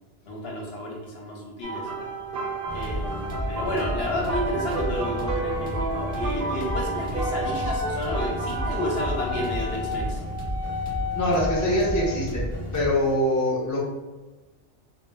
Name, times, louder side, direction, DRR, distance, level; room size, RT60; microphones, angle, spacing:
voice 1, 0.3-1.9 2.7-10.2, left 1 dB, 65° left, -2 dB, 0.8 m, -31 dB
sound 1, 1.6-9.9 10.8-11.0 12.8-12.9, right 3 dB, 65° right, 0.7 m, -32 dB
sound 2, 2.7-12.9, left 1 dB, 10° left, 0.7 m, -32 dB
Wind instrument woodwind instrument, 7.1-12.2, left 3 dB, 35° right, 0.4 m, -34 dB
voice 2, 11.1-13.8, equal, 30° left, -5 dB, 0.3 m, -24 dB
2.1 x 2.0 x 3.3 m, 1.2 s
omnidirectional pair, 1.2 m